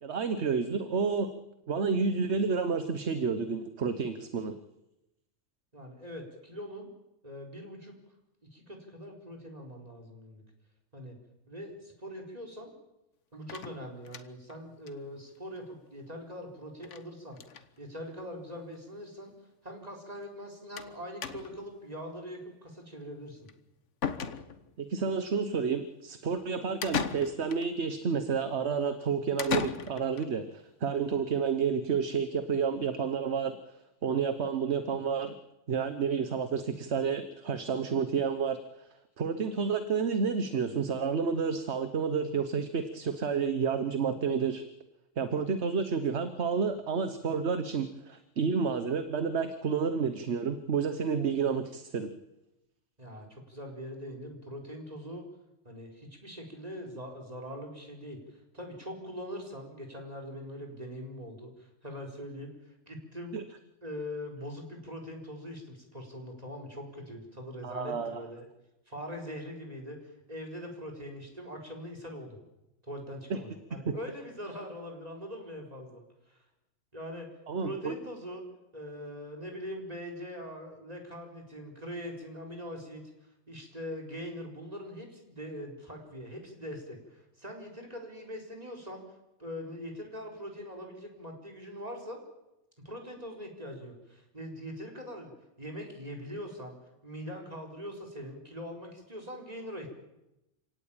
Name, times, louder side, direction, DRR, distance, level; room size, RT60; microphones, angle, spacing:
voice 1, 0.0-1.3 1.7-4.5 24.8-33.6 34.0-35.3 35.7-38.9 39.2-44.6 45.2-52.1 63.3-63.4 67.6-68.2 73.3-73.4 73.9-74.0 77.5-78.0, right 5 dB, 65° right, 10 dB, 1.4 m, -30 dB
voice 2, 5.7-6.9 7.2-7.9 8.5-10.4 10.9-11.2 11.5-12.7 13.3-17.4 17.8-19.3 19.6-23.5 53.0-55.2 55.6-63.4 63.8-68.5 68.9-72.4 72.8-76.4 76.9-77.3 77.6-78.4 78.7-83.0 83.5-89.0 89.4-92.2 92.8-96.8 97.0-99.9, equal, 30° right, 1 dB, 4.5 m, -42 dB
sound 1, 13.5-14.5 14.9-15.0 15.2-15.3 15.6-15.7 16.8-17.1 17.3-17.7 18.6-18.7 18.9-19.0 20.8-20.9 21.2-21.7 23.5-23.6 24.0-24.8 26.8-27.7 29.4-30.3, left 6 dB, 75° left, 1.4 m, -36 dB
27.5 x 17.5 x 8.9 m, 0.93 s
omnidirectional pair, 1.3 m